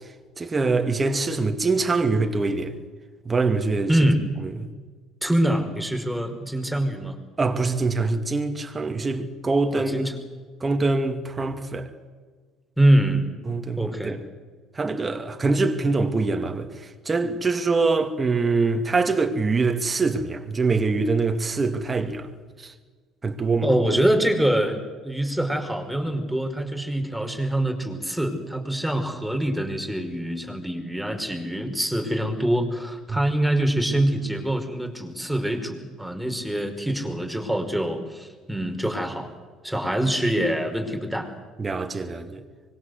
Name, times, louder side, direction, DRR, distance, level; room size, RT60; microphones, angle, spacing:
voice 1, 0.4-2.7 3.2-3.9 4.4-4.7 7.4-10.1 10.6-11.9 13.5-14.2 14.7-22.3 22.6-22.7 23.2-23.7 33.1-33.2 41.6-42.4, right 3 dB, 25° right, 2.6 m, -24 dB
voice 2, 3.9-4.2 5.2-7.2 9.7-10.2 12.8-13.3 13.8-14.2 23.6-39.3 39.6-41.3, right 1 dB, ahead, 5.2 m, -24 dB
25.0 x 22.5 x 8.1 m
hypercardioid pair, 60°, 0 cm